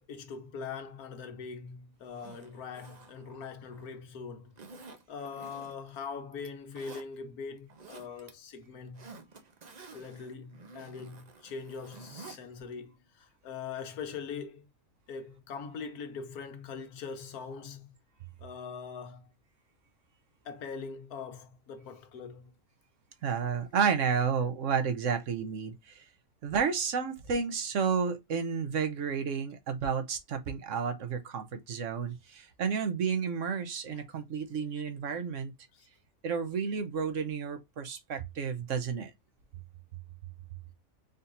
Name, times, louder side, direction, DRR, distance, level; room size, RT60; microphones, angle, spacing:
voice 1, 0.0-4.5 5.1-9.1 9.9-14.6 15.1-17.9 18.4-19.3 20.4-22.5 35.7-35.9, left 5 dB, 85° left, 1.4 m, -42 dB
Zipper (clothing), 2.0-4.0 4.6-6.0 6.3-7.1 7.6-8.3 8.6-12.4 12.7-12.8, right 4 dB, 40° right, 0.6 m, -51 dB
voice 2, 23.2-26.0 26.4-35.5 36.2-39.1, right 6 dB, 60° right, 1.1 m, -31 dB
4.1 x 4.0 x 2.6 m
omnidirectional pair, 1.5 m